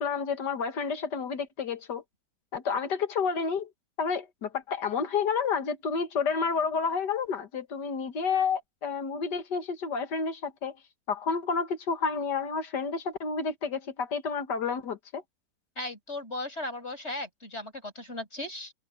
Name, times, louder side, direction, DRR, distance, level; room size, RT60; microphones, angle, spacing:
voice 1, 0.0-2.0 2.5-3.7 4.0-10.8 11.1-15.2, left 5 dB, 85° left, 2.2 m, -30 dB
voice 2, 15.8-18.7, left 2 dB, 40° left, 6.5 m, -37 dB
omnidirectional pair, 1.8 m